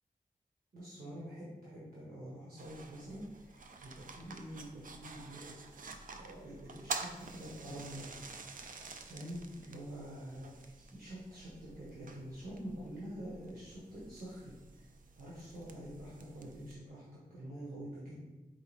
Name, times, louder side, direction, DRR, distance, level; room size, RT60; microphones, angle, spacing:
voice 1, 0.7-5.5 5.8-8.1 9.0-14.5 15.2-18.2, right 1 dB, 85° right, -8 dB, 1.2 m, -46 dB
sound 1, 2.6-16.7, right 4 dB, 65° right, 0.4 m, -49 dB
4.6 x 3.3 x 3.3 m, 1.1 s
wide cardioid pair, 85°, 15 cm